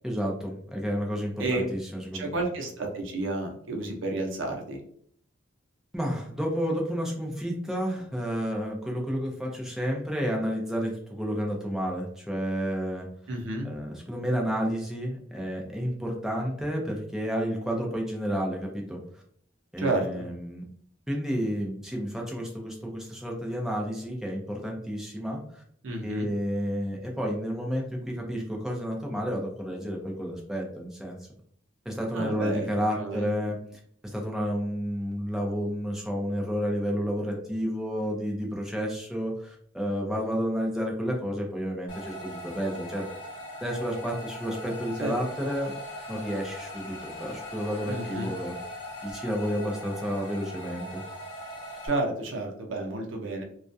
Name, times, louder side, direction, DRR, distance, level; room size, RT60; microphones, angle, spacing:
voice 1, 0.0-2.4 5.9-13.1 13.6-19.0 19.7-20.6 21.1-25.6 26.0-31.3 31.9-33.6 34.1-43.1 43.6-45.7 46.1-48.5 49.0-51.0, equal, ahead, -1 dB, 0.4 m, -31 dB
voice 2, 2.1-4.8 13.3-13.7 19.8-20.3 25.8-26.3 32.1-32.7 33.0-33.3 45.0-45.2 47.9-48.3 51.8-53.4, right 2 dB, 85° right, 2 dB, 0.6 m, -31 dB
sound 1, 41.9-51.9, equal, 30° left, 1.1 m, -40 dB
2.3 x 2.1 x 2.6 m, 0.64 s
head